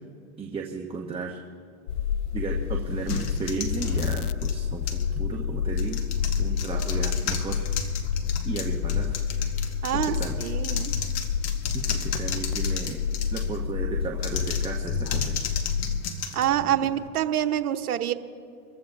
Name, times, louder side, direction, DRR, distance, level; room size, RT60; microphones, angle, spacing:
voice 1, 0.4-1.4 2.3-6.0 6.4-7.7 8.4-9.2 9.9-10.4 11.7-13.0 13.3-15.4, right 5 dB, 10° right, 0 dB, 1.1 m, -34 dB
sound 1, 1.9-16.1, left 7 dB, 85° left, 0.6 m, -29 dB
sound 2, 3.1-5.1 5.7-13.6 14.1-17.1, left 5 dB, 35° left, 1.5 m, -34 dB
voice 2, 9.8-10.9 16.3-18.1, right 11 dB, 80° right, 8 dB, 1.1 m, -26 dB
26.0 x 14.5 x 2.6 m, 2.4 s
hypercardioid pair, 115°, 44 cm